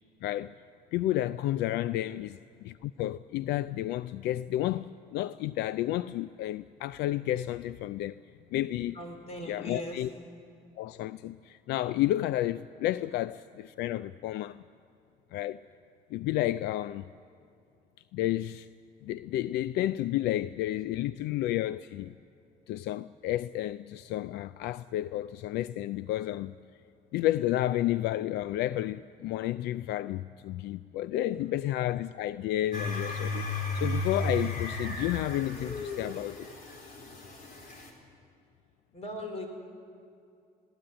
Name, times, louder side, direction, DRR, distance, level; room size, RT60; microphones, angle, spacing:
voice 1, 0.2-0.5 0.9-8.2 8.5-9.0 9.5-10.1 10.8-14.6 15.3-15.6 16.1-17.0 18.1-18.7 19.0-22.1 22.7-26.5 27.1-36.5, left 14 dB, 80° left, 0.4 m, -31 dB
voice 2, 8.9-10.1 13.0-13.1 38.9-39.5, equal, 40° left, 4.6 m, -40 dB
sound 1, 32.7-37.9, left 2 dB, 55° left, 4.0 m, -34 dB
20.5 x 18.0 x 8.8 m
cardioid pair, 110°, 17 cm